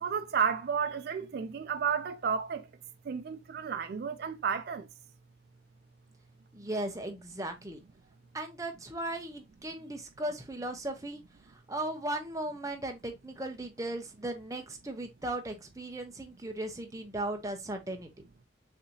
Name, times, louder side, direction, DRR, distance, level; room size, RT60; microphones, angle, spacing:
voice 1, 0.0-2.7 3.1-4.9, right 6 dB, 50° right, 0.3 m, -32 dB
voice 2, 6.5-7.8 8.3-18.1, right 1 dB, 15° right, 0.8 m, -37 dB
6.6 x 2.8 x 2.7 m
head